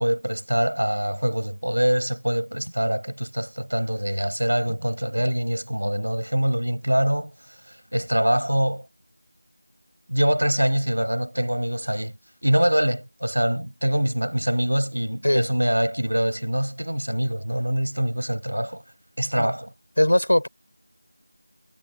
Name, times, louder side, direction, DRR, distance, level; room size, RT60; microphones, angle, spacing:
voice 1, 0.0-7.3 7.7-8.9 10.1-12.1 12.4-18.8 19.2-19.7, equal, 85° right, 6.3 m, -24 dB
voice 2, 20.0-20.5, left 1 dB, 80° left, 7.4 m, -20 dB
figure-of-eight pair, 175°, 0 cm